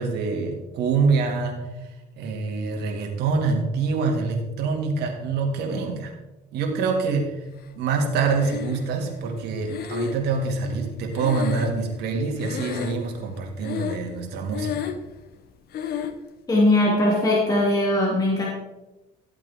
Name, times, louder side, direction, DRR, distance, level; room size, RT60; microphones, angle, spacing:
voice 1, 0.0-1.6 2.2-6.1 6.5-7.3 7.8-14.9, right 4 dB, 80° right, 2 dB, 2.4 m, -25 dB
Breathing, 8.4-9.1 9.7-12.1 12.4-13.2 13.6-14.2 14.5-15.1 15.7-16.2, left 8 dB, 65° left, 1.0 m, -32 dB
voice 2, 16.5-18.5, left 1 dB, 20° left, -4 dB, 2.9 m, -20 dB
14.5 x 8.3 x 3.7 m, 1.0 s
cardioid pair, 110°, 17 cm